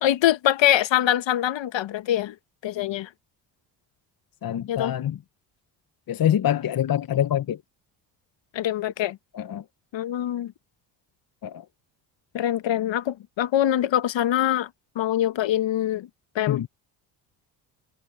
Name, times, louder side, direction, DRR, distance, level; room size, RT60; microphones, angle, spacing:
voice 1, 0.0-2.3 2.6-3.1 4.7-4.9 8.5-9.2 9.9-10.5 12.3-14.7 14.9-16.1 16.3-16.7, left 12 dB, 65° left, 1.7 m, -24 dB
voice 2, 4.4-5.2 6.1-7.6 9.3-9.6 11.4-11.6 16.5-16.7, left 10 dB, 45° left, 1.1 m, -25 dB
supercardioid pair, 65°, 49 cm